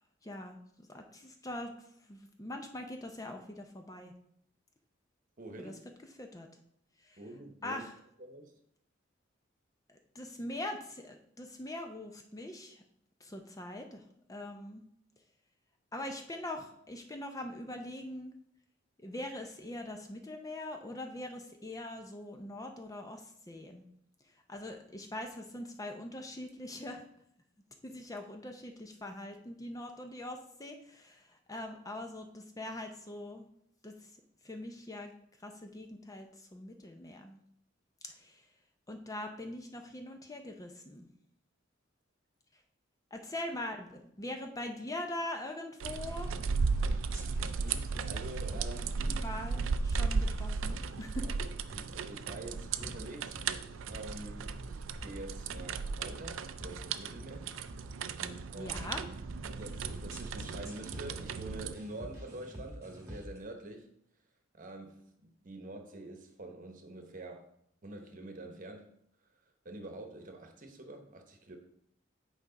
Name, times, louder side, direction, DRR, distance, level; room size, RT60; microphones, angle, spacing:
voice 1, 0.2-1.7 2.1-4.1 5.6-5.7 6.2-6.5 7.0-7.2 7.6-7.9 9.9-12.8 13.2-14.0 14.3-14.8 15.9-18.3 19.0-23.9 24.5-27.0 27.8-33.4 33.8-34.1 34.4-35.1 35.4-37.4 38.1-38.4 38.9-41.1 43.1-46.3 49.1-51.3 58.2-59.0, left 1 dB, 20° left, 0.6 m, -42 dB
voice 2, 5.4-5.8 7.2-7.8 8.2-8.5 47.5-49.1 51.2-51.3 51.7-53.4 53.9-57.5 58.5-58.8 59.4-63.9 64.5-67.5 67.8-68.9 69.6-71.6, right 2 dB, 45° right, 1.0 m, -46 dB
sound 1, 45.8-61.7, right 4 dB, 90° right, 0.4 m, -36 dB
sound 2, 46.1-63.4, equal, 15° right, 1.3 m, -48 dB
7.9 x 4.8 x 4.0 m
head